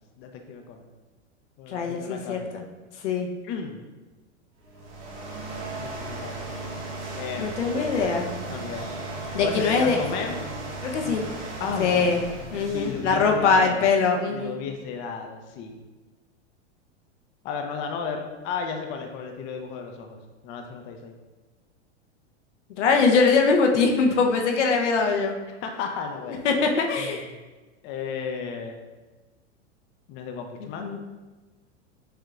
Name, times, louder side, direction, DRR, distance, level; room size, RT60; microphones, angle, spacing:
voice 1, 0.2-0.8 1.6-2.5 3.4-3.8 5.8-6.3 7.2-8.9 9.4-10.5 11.6-12.0 12.7-13.9 14.3-15.8 17.4-21.1 25.5-26.6 27.0-27.2 27.8-28.8 30.1-31.0, left 6 dB, 35° left, 4 dB, 0.5 m, -34 dB
voice 2, 1.7-2.6 3.0-3.3 7.4-8.3 9.3-10.0 10.8-11.3 11.8-12.2 12.5-14.6 22.8-25.3 26.4-27.3 30.6-31.0, left 4 dB, 85° left, 2 dB, 0.8 m, -22 dB
sound 1, 4.6-13.8, right 2 dB, 70° right, 1.4 m, -36 dB
6.5 x 2.8 x 2.4 m, 1.2 s
hypercardioid pair, 120°, 35 cm